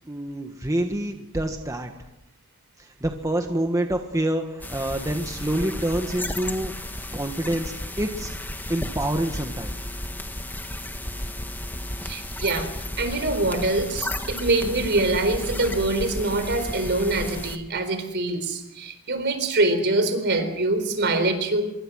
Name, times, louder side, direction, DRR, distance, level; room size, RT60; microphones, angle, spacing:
voice 1, 0.0-1.9 2.8-6.7 7.1-8.3 8.7-9.7, right 1 dB, 15° right, 4 dB, 1.4 m, -27 dB
sound 1, 4.6-17.6, left 1 dB, 10° left, 1.7 m, -33 dB
voice 2, 12.0-12.7 13.0-21.6, right 2 dB, 55° right, 9 dB, 4.2 m, -24 dB
25.5 x 23.5 x 6.3 m, 0.90 s
head